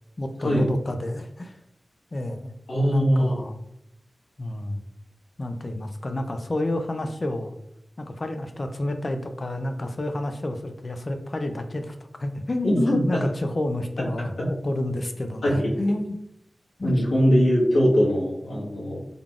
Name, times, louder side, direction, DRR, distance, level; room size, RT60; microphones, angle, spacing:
voice 1, 0.2-1.6 2.1-2.5 2.8-3.6 4.4-4.9 5.4-7.5 8.0-11.9 12.2-16.2 16.8-17.0, left 1 dB, 35° left, 7 dB, 0.4 m, -29 dB
voice 2, 2.7-3.4 12.6-13.2 14.4-14.5 15.4-15.7 16.8-19.0, equal, 85° left, -6 dB, 1.3 m, -21 dB
3.7 x 3.5 x 2.4 m, 0.77 s
wide cardioid pair, 115°, 0 cm